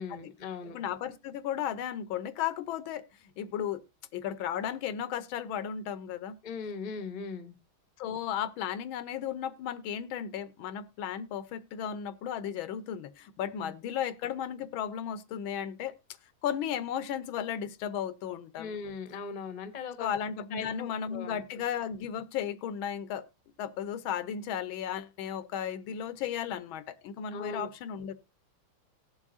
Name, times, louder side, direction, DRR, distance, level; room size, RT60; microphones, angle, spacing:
voice 1, 0.0-0.8 6.4-7.6 13.6-13.7 18.6-20.1 20.5-21.4 27.3-27.7, left 5 dB, 35° left, 0.7 m, -39 dB
voice 2, 0.7-3.0 3.4-3.8 4.1-6.4 8.0-15.9 16.4-18.8 20.0-23.3 23.6-28.1, left 9 dB, 85° left, 1.5 m, -35 dB
19.0 x 7.3 x 2.6 m
omnidirectional pair, 2.2 m